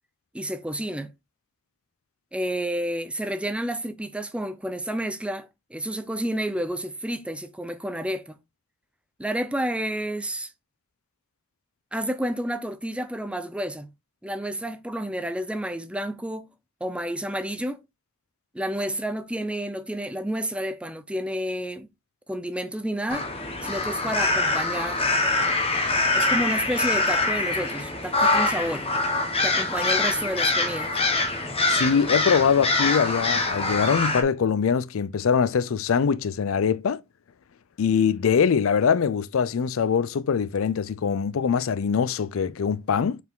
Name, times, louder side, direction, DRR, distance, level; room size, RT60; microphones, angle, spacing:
voice 1, 0.3-1.1 2.3-8.4 9.2-10.5 11.9-13.9 14.2-16.5 16.8-17.8 18.5-21.9 22.3-23.3 23.6-25.0 26.1-28.9 29.4-31.0, right 1 dB, 5° right, 0.6 m, -30 dB
sound 1, 23.1-34.2, left 2 dB, 25° left, 1.3 m, -24 dB
voice 2, 31.7-37.0 37.8-43.2, left 6 dB, 65° left, 0.4 m, -23 dB
5.8 x 4.7 x 3.7 m
head